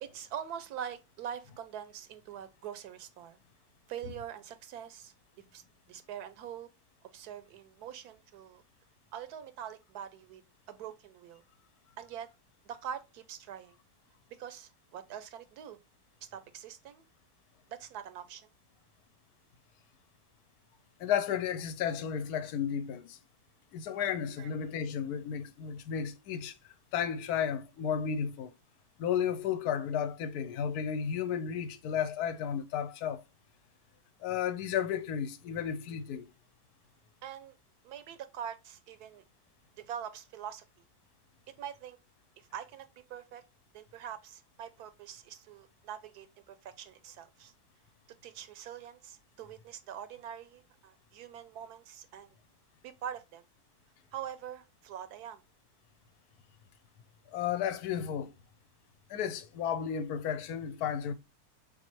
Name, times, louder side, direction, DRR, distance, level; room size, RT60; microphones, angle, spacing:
voice 1, 0.0-3.4 3.9-5.6 5.9-6.7 7.1-8.6 9.1-10.4 10.7-11.4 12.0-12.3 12.6-13.8 14.4-15.8 16.3-17.0 17.7-18.5 24.4-24.5 37.2-37.5 37.8-39.2 39.8-40.6 41.6-42.0 42.4-43.4 43.7-47.5 48.2-52.3 52.8-53.4 54.1-55.4, right 9 dB, 85° right, 1.2 m, -44 dB
voice 2, 21.0-23.2 23.7-26.5 26.9-28.5 29.0-33.2 34.2-36.3 57.3-58.3 59.1-61.1, left 8 dB, 80° left, 1.1 m, -33 dB
4.2 x 3.8 x 3.0 m
omnidirectional pair, 1.6 m